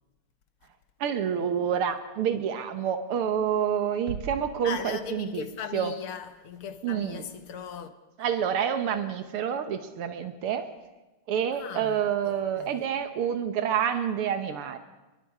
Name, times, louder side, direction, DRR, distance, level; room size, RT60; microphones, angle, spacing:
voice 1, 1.0-5.5 5.7-5.9 6.8-7.3 8.2-10.7 11.3-14.8, right 8 dB, 90° right, 2.1 m, -28 dB
sound 1, 4.1-5.7, right 6 dB, 65° right, 1.8 m, -41 dB
voice 2, 4.6-7.9 8.2-8.3 11.5-12.0 12.3-12.9, left 7 dB, 80° left, 2.2 m, -38 dB
29.5 x 22.0 x 4.9 m
omnidirectional pair, 2.4 m